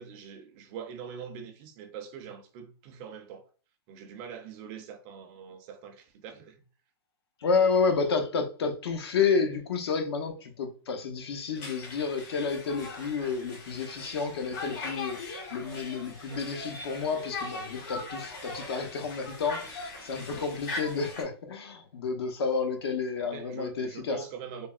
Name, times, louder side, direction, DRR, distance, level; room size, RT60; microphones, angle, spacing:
voice 1, 0.0-3.5 3.9-6.6 23.2-24.7, right 7 dB, 35° right, 0.5 m, -43 dB
voice 2, 7.4-24.2, left 5 dB, 70° left, 0.7 m, -30 dB
Conversation, 11.6-21.2, left 3 dB, 50° left, 1.0 m, -40 dB
3.4 x 2.0 x 2.3 m
hypercardioid pair, 140°, 13 cm